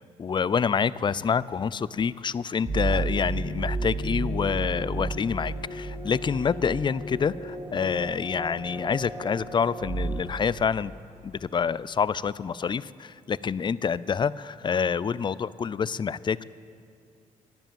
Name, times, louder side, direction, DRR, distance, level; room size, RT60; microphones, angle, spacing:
voice 1, 0.2-10.9 11.2-16.4, left 6 dB, 35° left, 19 dB, 0.4 m, -27 dB
sound 1, 2.6-11.3, right 2 dB, 40° right, 2.3 m, -33 dB
12.5 x 10.5 x 7.6 m, 2.3 s
supercardioid pair, 60°, 14 cm